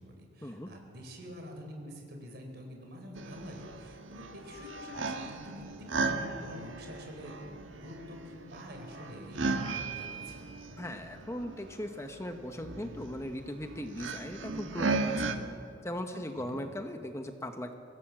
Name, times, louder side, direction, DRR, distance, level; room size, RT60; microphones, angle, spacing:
voice 1, 0.0-5.6 5.9-10.6 16.4-16.6, equal, 55° right, 3 dB, 4.5 m, -46 dB
sound 1, 3.2-15.4, right 3 dB, 90° right, 1.5 m, -37 dB
sound 2, 3.5-3.8 4.2-5.3 5.9-6.7, left 5 dB, 60° left, 2.9 m, -50 dB
voice 2, 10.8-15.4 15.8-17.7, left 1 dB, 15° left, 6 dB, 1.0 m, -39 dB
25.0 x 16.5 x 7.4 m, 2.6 s
head